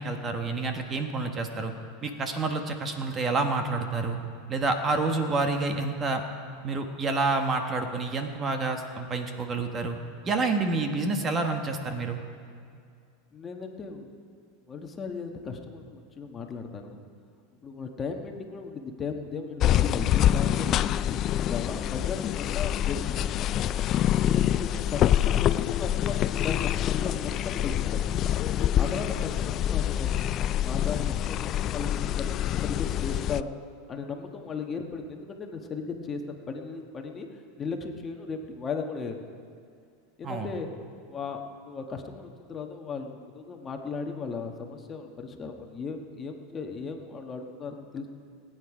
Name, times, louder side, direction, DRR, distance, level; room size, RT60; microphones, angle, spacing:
voice 1, 0.0-1.7 2.0-4.2 4.5-6.2 6.6-10.0 10.2-12.2 40.2-40.5, right 3 dB, 25° right, 5 dB, 1.3 m, -28 dB
voice 2, 13.3-14.2 14.7-17.0 17.6-23.5 24.2-28.2 28.8-33.6 33.9-39.2 40.2-40.7 41.1-48.1, left 5 dB, 25° left, 3 dB, 1.4 m, -36 dB
sound 1, 19.6-33.4, left 11 dB, 40° left, 0.3 m, -26 dB
19.5 x 9.2 x 5.0 m, 2.3 s
supercardioid pair, 120°, 0 cm